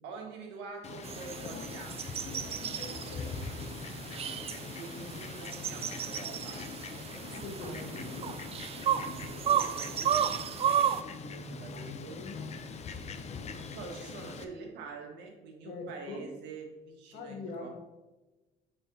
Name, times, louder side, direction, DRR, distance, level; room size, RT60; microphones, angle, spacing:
voice 1, 0.0-2.5 4.4-6.7 9.3-10.0 11.4-12.2 13.7-17.7, right 4 dB, 90° right, 2 dB, 1.5 m, -46 dB
Fowl, 0.8-14.4, left 5 dB, 40° left, 0.6 m, -42 dB
sound 1, 1.0-11.0, right 9 dB, 35° right, 0.3 m, -33 dB
voice 2, 2.8-3.4 7.2-8.4 11.1-12.6 15.6-16.3 17.1-17.7, left 2 dB, 80° left, 2 dB, 1.5 m, -44 dB
9.0 x 4.4 x 2.8 m, 1.1 s
cardioid pair, 110°, 17 cm